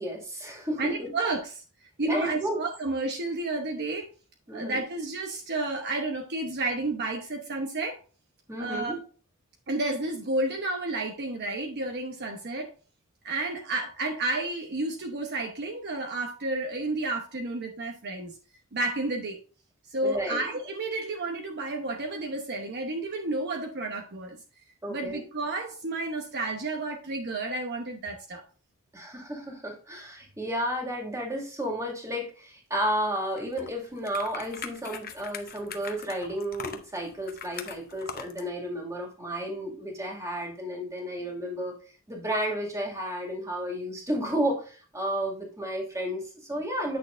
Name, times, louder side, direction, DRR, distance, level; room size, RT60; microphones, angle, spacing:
voice 1, 0.0-1.1 2.1-2.6 4.5-4.8 8.5-9.0 20.0-20.4 24.8-25.2 28.9-41.8 42.1-47.0, equal, 15° right, 0 dB, 2.2 m, -32 dB
voice 2, 0.8-1.6 2.0-4.1 4.5-8.0 8.6-9.0 9.7-12.7 13.2-18.4 18.7-19.4 19.9-24.4 24.9-28.4, right 2 dB, 50° right, 2 dB, 1.0 m, -31 dB
sound 1, 33.4-38.5, left 7 dB, 45° left, 0.8 m, -41 dB
8.6 x 6.4 x 2.6 m, 0.37 s
head